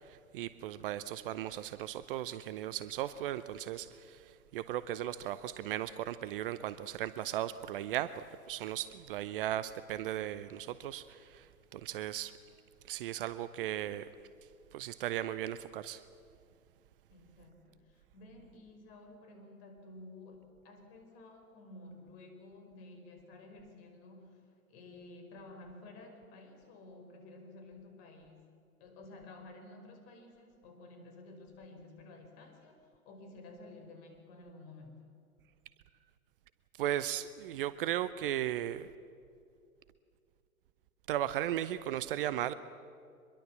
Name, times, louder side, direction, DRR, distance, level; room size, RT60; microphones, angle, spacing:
voice 1, 0.1-11.5 11.7-12.3 12.9-14.1 14.7-16.0 36.8-38.9 41.1-42.5, right 12 dB, 40° right, 15 dB, 0.7 m, -36 dB
voice 2, 17.1-28.5 28.8-35.1, left 2 dB, 40° left, 4 dB, 5.2 m, -53 dB
24.5 x 22.0 x 7.5 m, 2.3 s
figure-of-eight pair, 105°, 43 cm